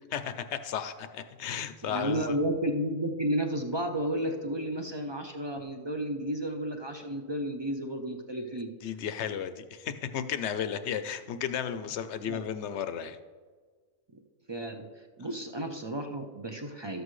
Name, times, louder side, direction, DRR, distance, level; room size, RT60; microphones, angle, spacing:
voice 1, 0.1-2.4 8.8-13.2, left 8 dB, 65° left, 10 dB, 0.8 m, -34 dB
voice 2, 1.9-8.7 12.3-12.4 14.5-17.0, right 1 dB, 45° right, 4 dB, 0.3 m, -32 dB
13.0 x 8.0 x 3.2 m, 1.5 s
omnidirectional pair, 1.5 m